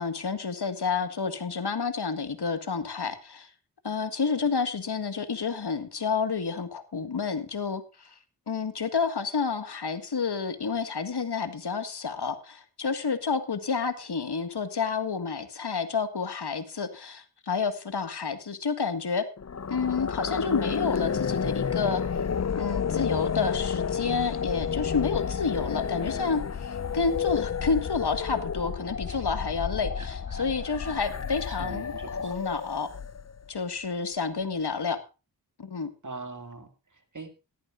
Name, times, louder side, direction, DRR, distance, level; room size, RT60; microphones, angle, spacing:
voice 1, 0.0-3.5 3.8-8.2 8.5-19.3 19.7-22.0 22.6-31.9 32.2-32.9 33.5-35.0 35.6-35.9, left 5 dB, 70° left, 10 dB, 1.9 m, -29 dB
sound 1, 19.4-33.5, left 6 dB, 40° left, 0.6 m, -31 dB
voice 2, 30.0-32.4 36.0-37.3, right 3 dB, 45° right, 8 dB, 2.5 m, -44 dB
17.5 x 13.0 x 2.5 m, 0.31 s
wide cardioid pair, 60°, 42 cm